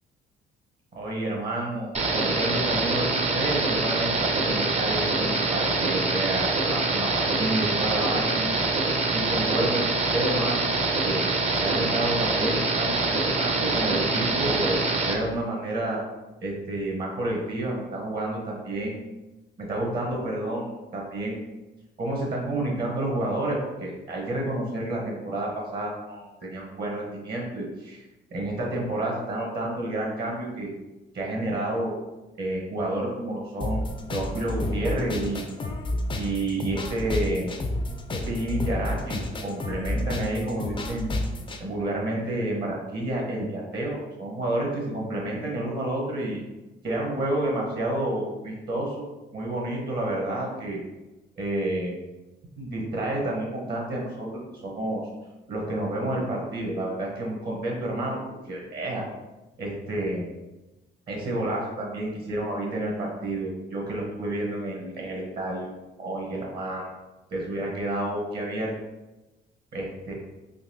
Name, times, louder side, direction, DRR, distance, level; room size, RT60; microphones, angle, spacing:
voice 1, 0.9-8.5 9.1-10.6 11.0-11.2 11.6-16.0 16.4-19.0 19.6-21.5 22.0-28.0 28.3-30.7 31.1-32.0 32.4-35.6 36.1-37.5 38.1-41.2 41.6-46.4 46.8-49.1 49.3-50.8 51.4-51.9 52.6-55.0 55.5-59.0 59.6-60.2 61.1-65.7 66.0-66.9 67.3-68.7 69.7-70.1, right 1 dB, 50° right, -2 dB, 1.0 m, -30 dB
Static Noise, 1.9-15.1, right 3 dB, 35° right, 0.6 m, -25 dB
sound 1, 33.6-41.6, left 1 dB, 25° left, 0.4 m, -30 dB
3.9 x 2.8 x 2.7 m, 1.1 s
cardioid pair, 90°, 20 cm